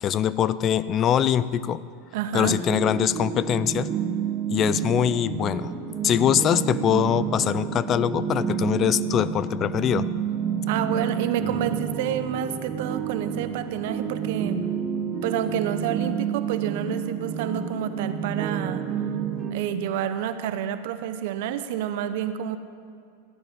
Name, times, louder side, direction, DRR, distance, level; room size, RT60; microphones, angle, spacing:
voice 1, 0.0-1.8 2.3-3.9 4.5-5.7 6.0-10.1, left 10 dB, 35° left, 16 dB, 0.5 m, -23 dB
voice 2, 2.1-2.6 10.7-14.6 15.1-18.9 19.5-22.6, right 10 dB, 65° right, 11 dB, 0.8 m, -29 dB
sound 1, 2.5-19.5, right 7 dB, 30° right, 1.4 m, -29 dB
14.5 x 12.0 x 5.3 m, 2.3 s
hypercardioid pair, 100°, 0 cm